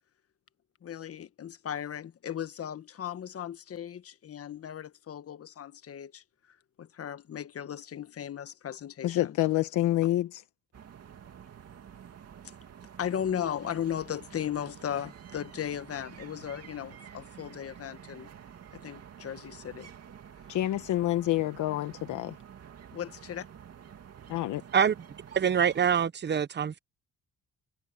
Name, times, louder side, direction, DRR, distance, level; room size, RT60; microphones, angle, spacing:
voice 1, 0.8-6.2 6.8-9.4 13.0-18.3 18.7-19.9 22.9-23.5, left 9 dB, 50° left, 1.3 m, -36 dB
voice 2, 9.0-10.4 20.5-22.3 24.3-24.6, left 14 dB, 80° left, 1.1 m, -27 dB
sound 1, 10.7-26.1, right 8 dB, 55° right, 2.8 m, -49 dB
voice 3, 25.3-26.8, right 7 dB, 35° right, 0.9 m, -25 dB
cardioid pair, 90°, 30 cm